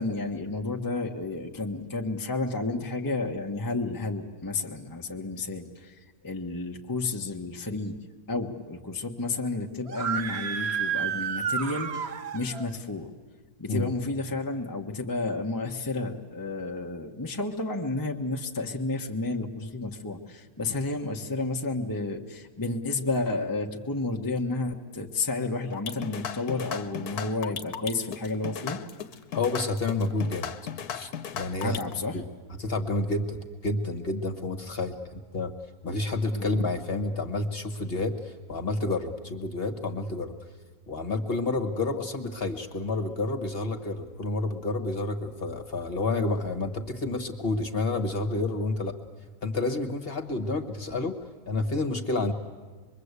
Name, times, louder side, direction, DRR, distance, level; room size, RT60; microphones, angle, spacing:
voice 1, 0.0-8.0 8.3-13.1 13.6-28.8 31.6-32.2 36.3-36.5, left 3 dB, 15° left, 2 dB, 1.1 m, -31 dB
Screaming, 9.9-12.7, right 7 dB, 45° right, 1.1 m, -30 dB
sound 1, 25.7-31.9, left 8 dB, 75° left, 1.5 m, -36 dB
voice 2, 29.3-30.5 30.9-31.8 32.1-32.2 32.6-35.5 35.8-40.3 40.9-48.9 49.4-51.1 51.5-52.3, left 2 dB, 40° left, 5 dB, 1.6 m, -29 dB
25.5 x 22.0 x 8.2 m, 1.4 s
omnidirectional pair, 1.7 m